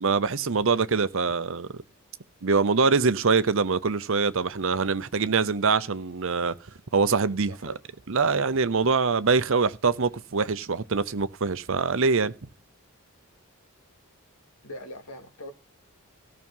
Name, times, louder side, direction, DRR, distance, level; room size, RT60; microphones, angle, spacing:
voice 1, 0.0-1.8 2.4-6.5 6.9-7.7 8.1-12.3, right 4 dB, 60° right, 0.8 m, -24 dB
voice 2, 7.5-7.8 14.6-15.5, equal, 80° left, 2.4 m, -41 dB
16.0 x 6.1 x 5.5 m
head